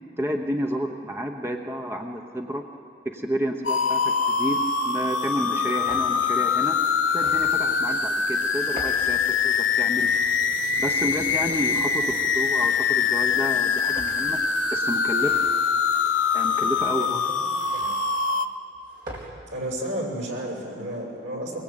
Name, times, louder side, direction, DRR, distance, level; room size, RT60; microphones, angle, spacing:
voice 1, 0.2-2.6 3.0-6.8 7.1-10.1 10.8-14.4 14.7-15.4 16.3-17.2, equal, 15° right, 3 dB, 1.0 m, -30 dB
sound 1, 3.6-18.5, left 5 dB, 90° left, 1.0 m, -24 dB
sound 2, 4.4-4.7 5.3-6.1 7.0-7.7 8.5-9.1 9.8-10.4 11.2-11.9 12.6-13.0 13.7-14.4 15.0-15.6 16.3-16.9 17.6-18.0 18.7-19.3, right 1 dB, 50° right, 4.3 m, -43 dB
voice 2, 19.5-21.6, right 1 dB, 80° right, 0 dB, 6.5 m, -32 dB
23.0 x 21.0 x 8.9 m, 2.5 s
head